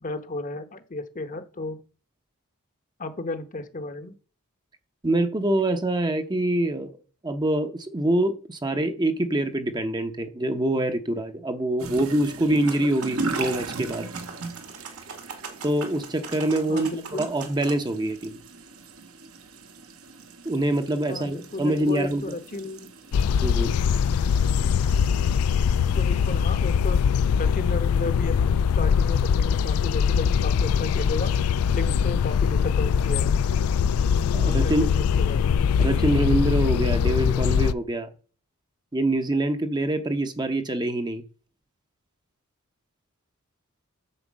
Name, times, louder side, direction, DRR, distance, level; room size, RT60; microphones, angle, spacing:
voice 1, 0.0-1.8 3.0-4.1 16.7-17.3 21.1-22.9 25.9-27.1 27.4-31.3 31.7-33.3 34.4-35.8, left 2 dB, 35° left, 9 dB, 0.9 m, -34 dB
voice 2, 5.0-6.9 7.2-14.1 15.6-18.4 20.4-22.4 23.4-23.7 34.3-34.9 35.8-38.1 38.9-41.2, right 1 dB, 20° right, 7 dB, 0.8 m, -25 dB
sound 1, 11.8-26.4, right 3 dB, 70° right, 1.2 m, -38 dB
sound 2, 12.5-17.7, right 5 dB, 85° right, 2.3 m, -40 dB
sound 3, 23.1-37.7, left 7 dB, 75° left, 0.3 m, -22 dB
9.8 x 4.4 x 7.4 m, 0.39 s
head